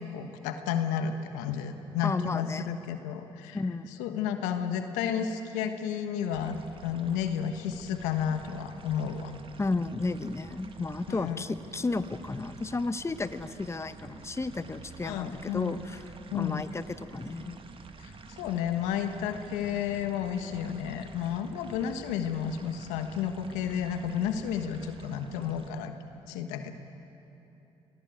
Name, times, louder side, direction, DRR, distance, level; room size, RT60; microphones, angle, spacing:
voice 1, 0.0-3.6 4.0-9.4 11.1-11.4 15.0-15.7 16.3-16.6 18.0-25.9 26.3-26.7, left 8 dB, 85° left, 7 dB, 1.4 m, -32 dB
voice 2, 2.0-2.8 3.5-3.9 9.6-16.0 16.3-17.5, left 3 dB, 20° left, 12 dB, 1.1 m, -33 dB
sound 1, 6.3-25.7, right 4 dB, 45° right, 1.9 m, -48 dB
25.5 x 18.5 x 9.1 m, 3.0 s
supercardioid pair, 55°, 12 cm